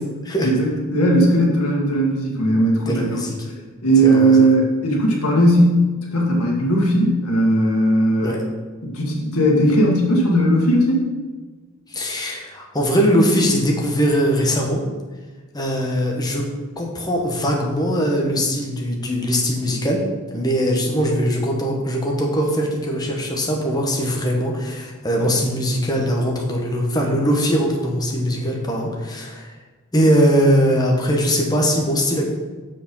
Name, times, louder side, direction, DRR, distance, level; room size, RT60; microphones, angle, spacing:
voice 1, 0.4-3.2 3.8-5.8 6.1-8.3 8.8-11.0, right 1 dB, 80° left, -2 dB, 1.8 m, -17 dB
voice 2, 2.9-3.3 4.0-4.5 8.2-8.4 11.9-14.8 15.5-16.5 16.8-20.0 20.3-29.5 29.9-32.3, equal, 20° left, 0 dB, 1.1 m, -21 dB
6.8 x 5.1 x 5.4 m, 1.3 s
head